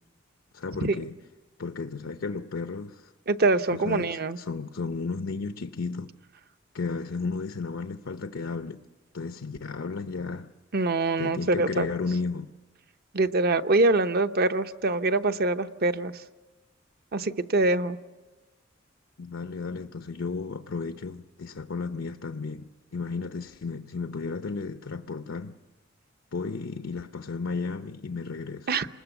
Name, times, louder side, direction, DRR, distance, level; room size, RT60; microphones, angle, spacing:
voice 1, 0.5-1.1 1.6-3.1 3.7-6.1 6.7-8.8 9.1-10.5 11.2-12.5 19.2-25.6 26.3-28.7, left 4 dB, 85° left, 0.7 m, -33 dB
voice 2, 3.3-4.4 10.7-11.9 13.1-16.2 17.1-18.0 28.7-28.9, right 2 dB, 50° right, 0.8 m, -24 dB
27.5 x 20.5 x 7.1 m
head